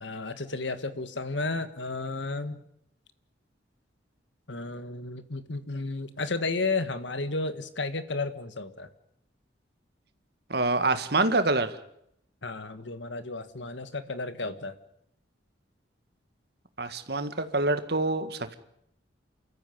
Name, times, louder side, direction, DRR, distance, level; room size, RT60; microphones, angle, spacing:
voice 1, 0.0-2.6 4.5-8.9 12.4-14.7, left 3 dB, 75° left, 11 dB, 1.7 m, -33 dB
voice 2, 10.5-11.7 16.8-18.6, right 2 dB, 55° right, 10 dB, 1.9 m, -26 dB
28.5 x 14.0 x 9.4 m, 0.76 s
head